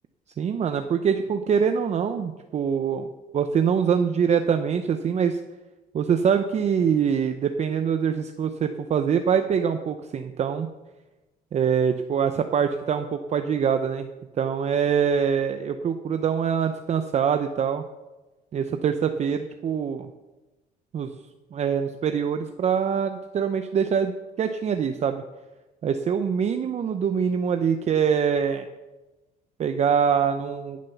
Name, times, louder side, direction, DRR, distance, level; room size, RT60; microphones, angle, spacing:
voice 1, 0.4-3.1 3.3-5.4 5.9-10.7 11.5-14.1 14.3-17.8 18.5-20.1 20.9-21.1 21.5-25.2 25.8-28.7 29.6-30.8, right 7 dB, 40° right, 7 dB, 0.7 m, -24 dB
14.5 x 7.4 x 5.8 m, 1.1 s
cardioid pair, 110°, 17 cm